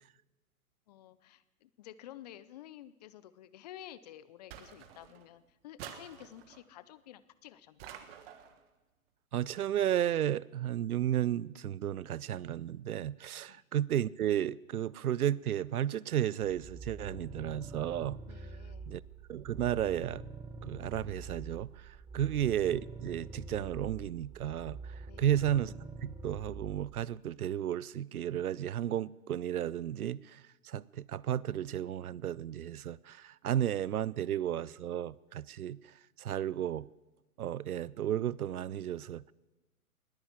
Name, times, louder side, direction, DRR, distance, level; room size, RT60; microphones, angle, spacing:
voice 1, 0.9-8.1 13.5-13.6 18.3-18.9 25.1-25.4, left 12 dB, 30° left, 0.5 m, -52 dB
sound 1, 4.5-5.3 5.8-6.7 7.8-8.6, right 9 dB, 40° right, 1.6 m, -49 dB
voice 2, 9.3-18.2 18.9-19.0 19.3-20.2 20.6-25.7 26.0-36.9 37.4-39.3, right 11 dB, 80° right, 0.6 m, -33 dB
sound 2, 16.4-27.0, right 3 dB, 10° right, 1.6 m, -46 dB
20.0 x 9.9 x 7.3 m
hypercardioid pair, 120°, 44 cm